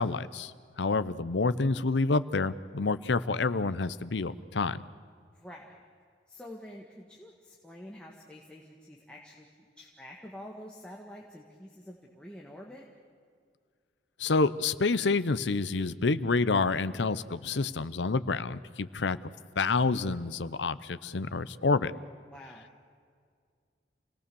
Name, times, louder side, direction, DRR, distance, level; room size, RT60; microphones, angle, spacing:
voice 1, 0.0-4.8 14.2-19.2 19.6-21.9, left 3 dB, 90° left, 15 dB, 0.7 m, -28 dB
voice 2, 5.3-5.8 6.3-9.5 9.8-12.9 22.3-22.7, left 1 dB, 5° left, -2 dB, 1.7 m, -47 dB
28.0 x 18.0 x 7.0 m, 2.1 s
head